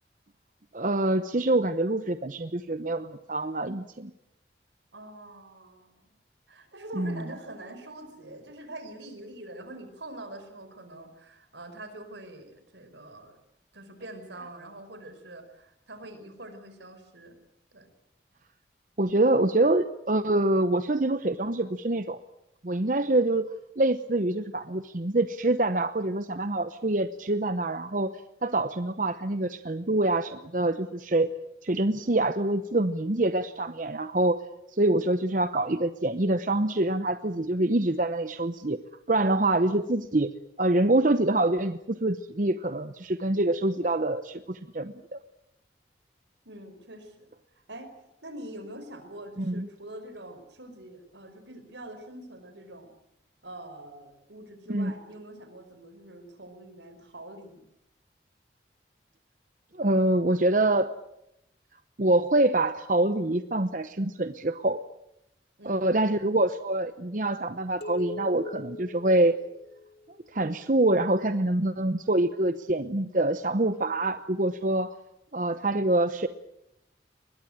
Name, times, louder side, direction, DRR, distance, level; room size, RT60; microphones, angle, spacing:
voice 1, 0.7-4.1 6.9-7.2 19.0-22.2 22.6-23.5 23.8-31.3 31.6-34.4 34.7-38.8 39.1-40.3 40.6-45.2 49.4-49.7 54.7-54.9 59.7-60.9 62.0-64.8 65.7-69.4 70.3-74.9 75.3-76.3, right 2 dB, 45° right, 11 dB, 0.8 m, -25 dB
voice 2, 4.9-6.1 6.5-13.4 13.7-17.4 17.7-17.9 46.4-47.3 47.5-47.9 48.2-52.9 53.4-57.6 65.6-65.9, right 1 dB, 85° right, 8 dB, 5.0 m, -44 dB
sound 1, 67.8-70.2, left 3 dB, 60° left, 3.3 m, -41 dB
22.5 x 21.0 x 8.9 m, 0.82 s
head